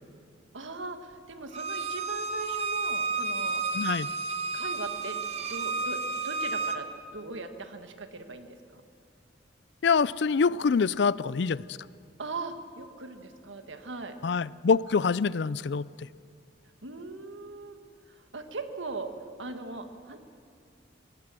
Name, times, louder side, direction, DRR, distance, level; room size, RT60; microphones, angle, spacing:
voice 1, 0.5-3.6 4.5-5.2 5.5-6.9 7.1-8.8 12.2-14.2 16.8-17.8 18.1-20.2, right 3 dB, 90° right, 7 dB, 1.6 m, -40 dB
Bowed string instrument, 1.5-6.8, right 4 dB, 35° right, 1.0 m, -31 dB
voice 2, 3.7-4.1 9.8-11.6 14.2-16.1, left 5 dB, 65° left, 20 dB, 0.4 m, -25 dB
23.0 x 17.5 x 7.6 m, 2.4 s
head